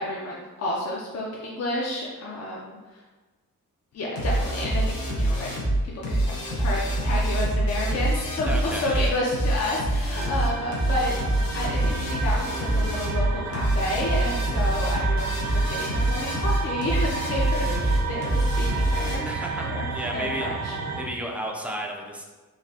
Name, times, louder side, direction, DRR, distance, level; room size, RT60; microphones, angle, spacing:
voice 1, 0.0-3.0 3.9-5.5 6.1-11.2 11.5-19.3 19.6-19.9 20.1-20.7, left 1 dB, 50° left, -4 dB, 0.6 m, -30 dB
sound 1, 4.2-19.2, right 1 dB, 85° left, 1.1 m, -25 dB
voice 2, 8.5-9.2 19.3-20.5 21.0-22.2, right 1 dB, 5° right, 0 dB, 0.4 m, -33 dB
sound 2, 10.1-21.0, right 4 dB, 55° right, 0.6 m, -32 dB
4.0 x 2.6 x 2.7 m, 1.3 s
wide cardioid pair, 120°, 33 cm